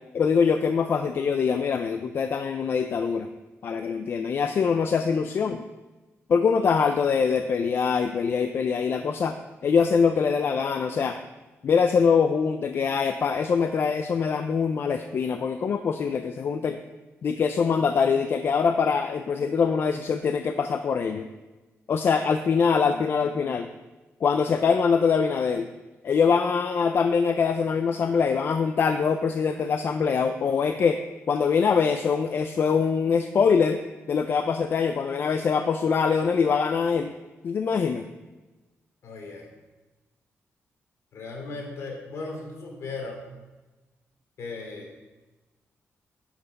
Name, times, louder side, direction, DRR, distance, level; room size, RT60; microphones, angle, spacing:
voice 1, 0.1-3.3 3.6-5.6 6.3-9.4 9.6-11.2 11.6-16.8 17.2-21.3 21.9-23.7 24.2-25.7 26.0-31.0 31.3-33.8 34.1-37.1 37.4-38.1, left 6 dB, 50° left, 8 dB, 0.5 m, -23 dB
voice 2, 39.0-39.5 41.1-43.2 44.4-44.9, left 3 dB, 70° left, 1 dB, 2.7 m, -37 dB
11.0 x 5.9 x 5.2 m, 1.2 s
wide cardioid pair, 150°, 5 cm